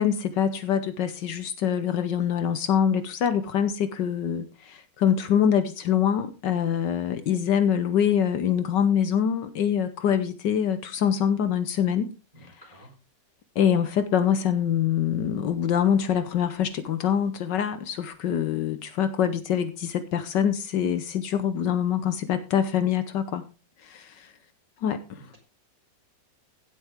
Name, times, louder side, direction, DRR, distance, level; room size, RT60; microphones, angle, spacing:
voice 1, 0.0-12.1 13.5-23.4 23.8-24.3 24.8-25.3, left 8 dB, 70° left, 11 dB, 1.5 m, -24 dB
voice 2, 12.3-12.9 25.1-25.4, right 1 dB, 20° right, 1 dB, 4.0 m, -51 dB
16.5 x 7.7 x 3.5 m, 0.30 s
omnidirectional pair, 2.0 m